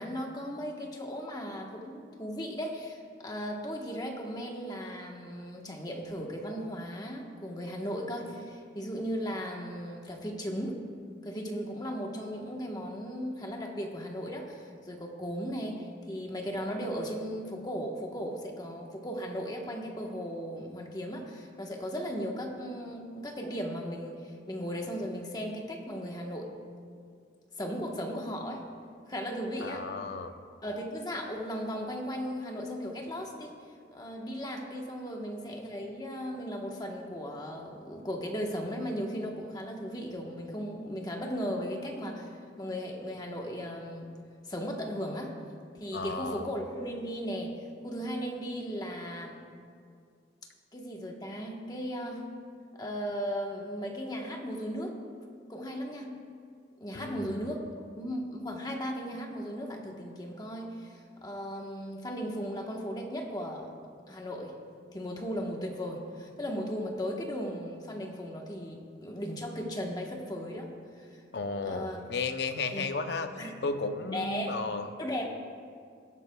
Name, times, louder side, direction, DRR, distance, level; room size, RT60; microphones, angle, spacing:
voice 1, 0.0-10.9 11.2-26.5 27.6-28.7 29.1-29.9 30.6-33.5 33.9-42.3 42.6-44.1 44.4-45.4 45.7-47.5 47.8-49.4 50.7-52.3 52.8-55.0 55.5-56.1 56.8-57.6 58.0-63.7 64.1-64.5 64.9-71.2 71.6-72.0 72.7-72.9 73.4-73.5 74.1-74.5 75.0-75.3, equal, 20° left, 1 dB, 1.2 m, -36 dB
voice 2, 29.6-30.3 45.9-46.5 56.9-57.4 71.3-73.3 73.6-74.9, left 3 dB, 60° left, 8 dB, 0.6 m, -34 dB
18.0 x 12.5 x 2.3 m, 2.2 s
head